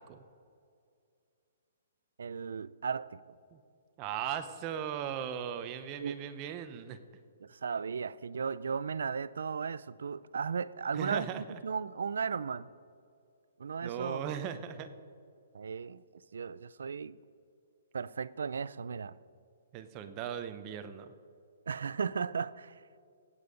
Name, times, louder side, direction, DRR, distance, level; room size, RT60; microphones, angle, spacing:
voice 1, 2.2-3.2 6.0-6.2 7.4-12.7 13.6-14.2 15.5-17.2 17.9-19.2 21.7-22.8, right 6 dB, 90° right, 0.4 m, -36 dB
voice 2, 4.0-7.0 10.9-11.6 13.8-14.9 19.7-21.1, right 9 dB, 20° right, 0.6 m, -38 dB
16.5 x 8.4 x 5.2 m
hypercardioid pair, 170°, 0 cm